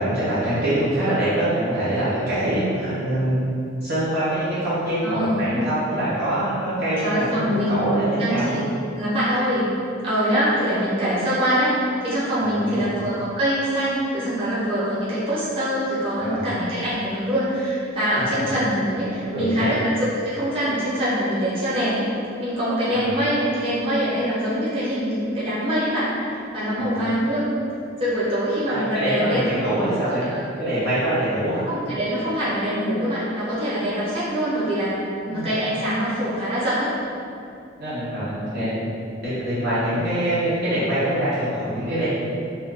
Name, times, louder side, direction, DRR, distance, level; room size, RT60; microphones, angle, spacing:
voice 1, 0.0-3.4 3.8-8.6 12.3-12.9 16.2-16.5 18.3-18.5 19.2-19.8 22.9-23.1 26.8-27.0 28.7-30.2 30.6-31.7 35.3-35.5 37.8-38.7 39.2-42.1, right 1 dB, 55° right, -12 dB, 0.7 m, -24 dB
voice 2, 5.0-5.4 7.0-8.6 8.9-9.7 10.0-22.1 22.4-27.5 28.0-29.7 30.3-30.4 31.7-36.9, equal, 30° right, -11 dB, 1.0 m, -24 dB
2.4 x 2.3 x 3.5 m, 2.5 s
head